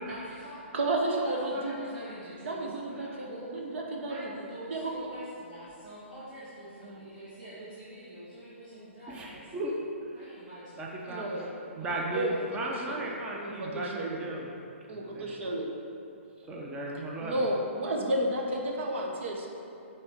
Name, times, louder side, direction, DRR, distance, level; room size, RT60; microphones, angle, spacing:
voice 1, 0.1-0.6 1.2-2.6 3.2-3.6 4.1-9.6 10.2-10.9 11.8-12.3, right 1 dB, 40° right, -10 dB, 1.7 m, -45 dB
voice 2, 0.7-1.7 2.4-4.3 4.7-5.1 6.8-7.0 11.0-11.5 12.1-13.1 13.4-14.2 14.9-15.7 17.2-19.5, right 1 dB, 65° right, 0 dB, 1.0 m, -32 dB
voice 3, 9.1-9.7 10.8-11.2 11.8-14.5 15.1-15.3 16.5-17.5, right 1 dB, 15° right, -2 dB, 0.7 m, -36 dB
7.5 x 4.3 x 4.5 m, 2.7 s
hypercardioid pair, 150°, 7 cm